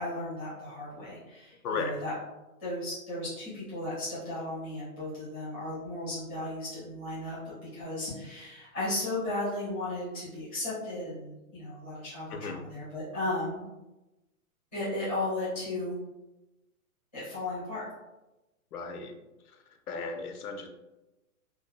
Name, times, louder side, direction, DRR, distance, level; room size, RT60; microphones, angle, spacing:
voice 1, 0.0-2.1 2.6-7.4 7.7-13.6 14.7-16.0 17.1-17.8, left 2 dB, 10° left, -12 dB, 0.6 m, -35 dB
voice 2, 1.6-1.9 12.3-12.6 18.7-19.1 19.9-20.7, left 4 dB, 85° left, 4 dB, 0.6 m, -35 dB
2.5 x 2.2 x 2.3 m, 1.0 s
hypercardioid pair, 170°, 44 cm